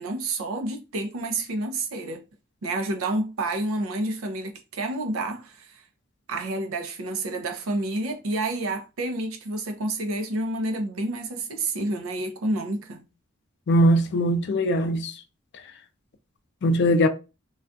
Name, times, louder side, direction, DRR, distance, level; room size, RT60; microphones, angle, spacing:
voice 1, 0.0-2.2 2.6-5.8 6.3-13.0, right 2 dB, 75° right, 0.5 m, -29 dB
voice 2, 13.7-15.1 16.6-17.1, equal, 55° left, 0.4 m, -20 dB
2.3 x 2.3 x 2.5 m
head